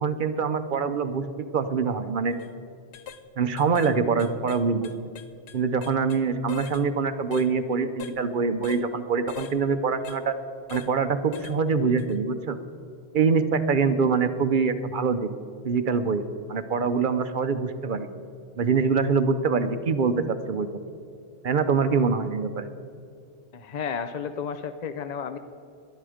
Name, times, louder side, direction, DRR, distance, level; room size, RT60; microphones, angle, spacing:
voice 1, 0.0-2.3 3.4-4.9 5.5-10.3 10.7-12.6 13.1-15.3 15.6-16.2 16.5-18.1 18.6-20.7 21.4-22.7, right 5 dB, 50° right, 10 dB, 0.8 m, -24 dB
sound 1, 2.3-2.5 2.9-3.2 3.6-6.2 6.5-6.8 7.3-7.5 8.0-8.2 8.6-8.8 9.3-9.6 10.0-10.2 10.7-10.9 11.3-11.6 12.0-12.1, left 8 dB, 70° left, 0.9 m, -41 dB
voice 2, 23.5-25.4, left 6 dB, 50° left, 10 dB, 0.6 m, -32 dB
19.0 x 12.0 x 5.0 m, 2.4 s
omnidirectional pair, 1.2 m